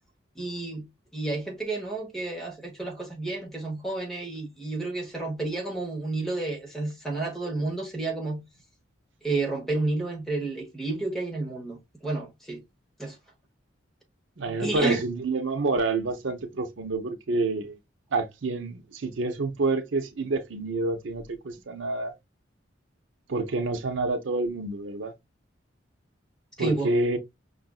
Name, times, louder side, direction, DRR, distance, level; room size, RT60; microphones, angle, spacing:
voice 1, 0.4-0.9 1.1-8.4 9.2-12.6 13.0-13.2 14.5-15.0 26.6-26.9, right 2 dB, ahead, 1.1 m, -31 dB
voice 2, 14.4-17.8 18.1-22.1 23.3-25.1 26.6-27.2, right 3 dB, 70° right, 0.6 m, -28 dB
5.6 x 2.5 x 2.3 m
head